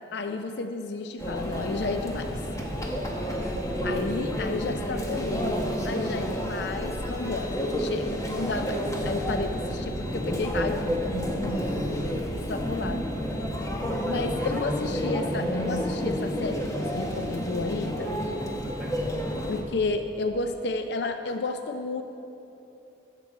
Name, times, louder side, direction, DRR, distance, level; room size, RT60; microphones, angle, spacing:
voice 1, 0.1-2.3 3.8-10.9 11.9-13.1 14.1-18.2 19.5-22.0, left 3 dB, 60° left, 7 dB, 0.5 m, -32 dB
Conversation / Chatter / Crowd, 1.2-19.6, equal, 15° left, 1.0 m, -30 dB
voice 2, 2.6-2.9 3.4-4.6 4.9-5.1 13.7-14.5 15.7-16.1 18.8-19.3, equal, 5° right, -5 dB, 1.7 m, -40 dB
15.5 x 6.8 x 4.6 m, 2.9 s
head